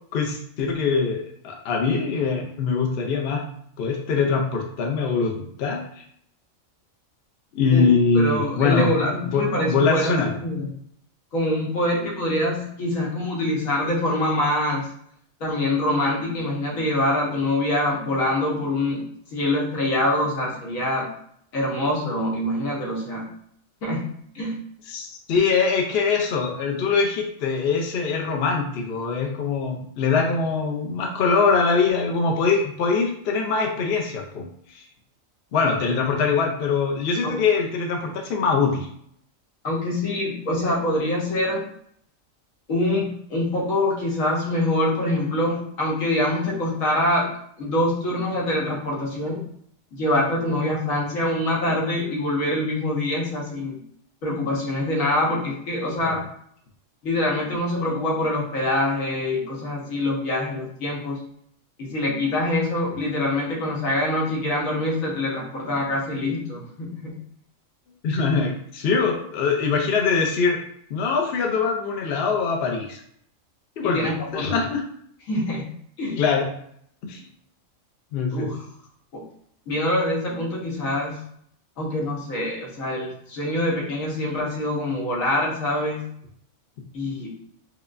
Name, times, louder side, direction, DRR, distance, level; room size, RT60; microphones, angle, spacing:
voice 1, 0.1-3.4 3.8-5.8 7.5-10.3 24.9-34.4 34.7-34.8 35.5-38.9 56.0-56.1 68.0-70.6 70.9-73.0 73.8-74.8 76.2-76.5 77.0-77.2 78.1-78.5, left 5 dB, 60° left, 1 dB, 0.7 m, -23 dB
voice 2, 8.1-10.7 11.3-14.9 15.4-19.0 19.3-21.1 21.5-23.3 23.8-24.1 24.3-24.6 37.2-37.4 39.6-41.6 42.7-47.3 47.6-49.4 49.9-53.8 54.2-56.2 57.0-61.2 61.8-67.2 73.8-74.5 75.3-75.6 76.0-76.2 78.3-78.6 79.1-79.2 79.7-81.2 81.8-86.0 86.9-87.3, left 1 dB, 85° left, -4 dB, 1.4 m, -25 dB
4.7 x 2.2 x 2.5 m, 0.67 s
omnidirectional pair, 1.4 m